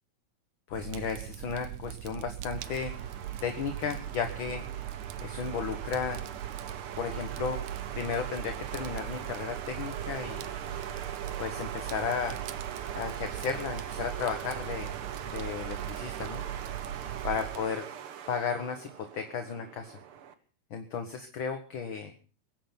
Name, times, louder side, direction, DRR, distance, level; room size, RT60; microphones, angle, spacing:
voice 1, 0.7-3.1 3.4-4.7 5.2-6.2 6.9-7.6 7.9-10.5 11.4-12.4 12.9-14.9 15.3-16.4 17.2-17.9 18.3-20.0 20.7-22.1, left 6 dB, 50° left, 6 dB, 1.9 m, -34 dB
Fire, 0.7-17.6, right 12 dB, 80° right, 2.2 m, -40 dB
sound 1, 2.6-20.3, right 9 dB, 60° right, 1.7 m, -41 dB
22.5 x 9.5 x 5.9 m, 0.39 s
omnidirectional pair, 3.3 m